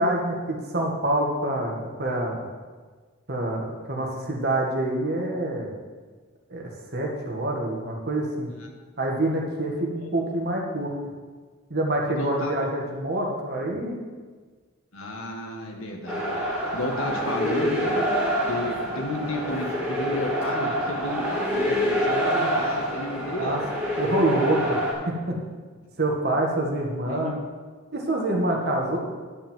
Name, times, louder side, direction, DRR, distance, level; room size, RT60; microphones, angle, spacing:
voice 1, 0.0-2.5 3.3-5.7 6.5-8.5 9.0-10.9 11.7-14.0 23.4-23.6 24.0-24.8 25.3-25.4 26.0-27.3 27.9-29.0, right 1 dB, 50° right, 0 dB, 1.8 m, -26 dB
voice 2, 9.8-10.1 12.1-12.6 14.9-16.4 16.7-18.0 18.5-23.6 27.1-27.3 28.8-29.0, left 1 dB, 75° left, 2 dB, 1.6 m, -33 dB
sound 1, 16.1-24.9, equal, 5° right, 3.0 m, -26 dB
11.0 x 5.4 x 7.5 m, 1.4 s
head